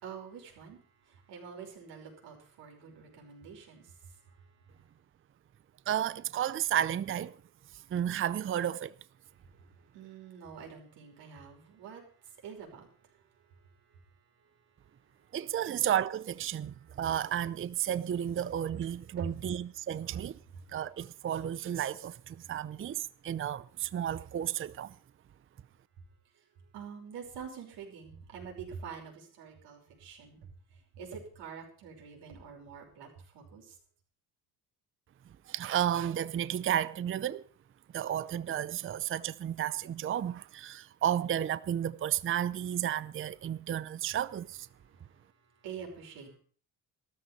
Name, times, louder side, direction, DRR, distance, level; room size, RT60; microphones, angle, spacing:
voice 1, 0.0-4.4 9.9-13.2 15.7-15.8 19.2-19.3 26.7-30.5 30.9-33.8 45.6-46.4, right 6 dB, 75° right, 5.6 m, -46 dB
voice 2, 5.9-7.3 7.9-9.0 15.3-20.4 20.7-24.9 35.5-37.4 37.9-44.7, right 10 dB, 30° right, 0.6 m, -32 dB
13.5 x 12.5 x 5.4 m
supercardioid pair, 70°, 41 cm